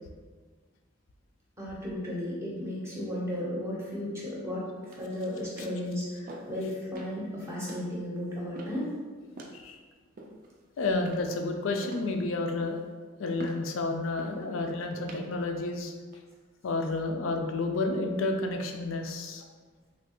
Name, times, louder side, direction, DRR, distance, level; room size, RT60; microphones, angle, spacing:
voice 1, 1.6-8.9, left 1 dB, 15° right, -6 dB, 0.7 m, -34 dB
sound 1, 4.8-5.2 5.6-5.8 6.3-6.6 6.9-7.2 7.7-7.9 8.5-8.9 9.4-9.6 10.2-10.6 11.0-11.4 11.8-12.2 12.6-12.9 13.4-13.7 14.2-14.4 15.0-15.3 15.9-16.2, right 1 dB, 45° right, 0.3 m, -45 dB
voice 2, 10.8-12.8 13.2-15.9 16.6-19.4, left 2 dB, 80° left, 4 dB, 0.4 m, -30 dB
3.2 x 2.3 x 2.8 m, 1.4 s
head